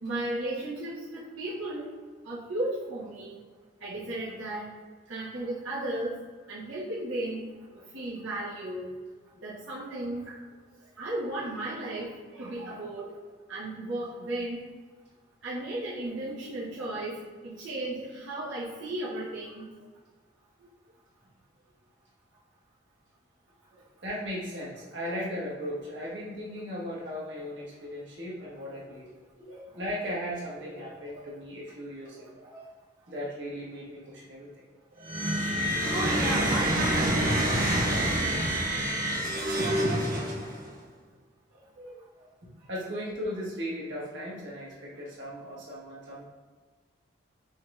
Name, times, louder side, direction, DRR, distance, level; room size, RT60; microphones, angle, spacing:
voice 1, 0.0-1.9 2.2-3.4 3.8-4.7 5.1-6.2 6.5-7.4 7.9-8.9 9.4-10.4 11.0-13.1 13.5-14.6 15.4-19.7 29.5-29.6 30.8-31.4 32.2-32.7 35.0-35.1 35.9-37.3 37.7-38.3 39.6-39.7 41.8-42.0, right 1 dB, 90° right, -9 dB, 1.1 m, -35 dB
voice 2, 24.0-29.1 29.4-32.3 33.1-34.5 42.7-46.2, equal, 70° right, -5 dB, 1.5 m, -37 dB
sound 1, 35.0-40.7, right 1 dB, 50° right, 1.2 m, -27 dB
6.1 x 3.4 x 2.5 m, 1.4 s
head